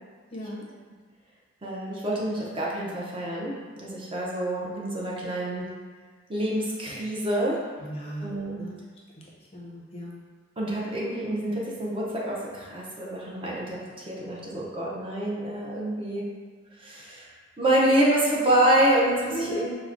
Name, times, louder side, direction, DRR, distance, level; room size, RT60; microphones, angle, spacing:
voice 1, 0.3-0.6 7.8-8.3 8.6-8.7 9.2-9.3 9.5-10.2 19.3-19.7, right 1 dB, 30° left, -4 dB, 0.5 m, -36 dB
voice 2, 1.6-5.7 6.3-7.6 8.2-8.6 10.6-13.8 14.1-16.2 16.8-17.3 17.6-19.7, right 1 dB, 25° right, -4 dB, 0.5 m, -26 dB
4.6 x 2.1 x 2.4 m, 1.5 s
head